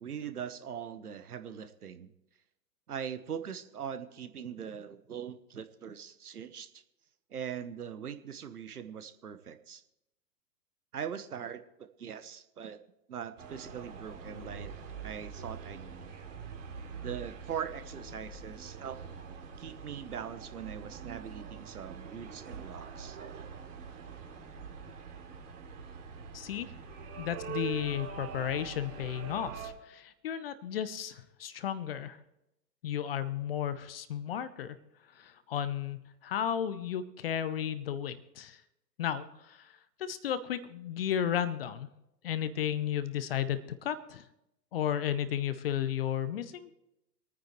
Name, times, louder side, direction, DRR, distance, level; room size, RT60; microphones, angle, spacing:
voice 1, 0.0-2.1 2.9-6.7 7.3-9.8 10.9-12.8 13.1-14.7 15.0-16.1 17.0-19.0 19.6-23.2, right 8 dB, 65° right, 11 dB, 1.2 m, -41 dB
sound 1, 13.4-29.7, right 6 dB, 50° right, 2.8 m, -44 dB
voice 2, 26.3-26.7 27.2-32.2 32.8-34.8 35.1-38.6 39.0-41.9 42.2-44.3 44.7-46.7, left 9 dB, 35° left, 14 dB, 0.8 m, -34 dB
25.5 x 9.4 x 3.2 m, 0.86 s
figure-of-eight pair, 115°, 49 cm